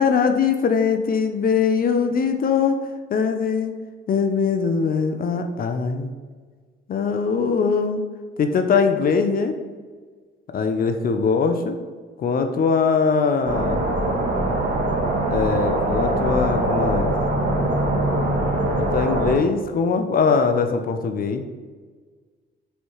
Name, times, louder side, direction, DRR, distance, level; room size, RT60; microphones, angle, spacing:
voice 1, 0.0-2.8 3.1-3.7 4.1-6.1 6.9-8.0 8.4-9.5 10.5-11.8 12.2-13.8 15.3-17.1 18.9-21.4, left 5 dB, 45° left, 7 dB, 0.4 m, -21 dB
sound 1, 13.4-19.4, right 1 dB, 60° right, 1.2 m, -22 dB
4.4 x 3.2 x 3.0 m, 1.5 s
cardioid pair, 90°, 20 cm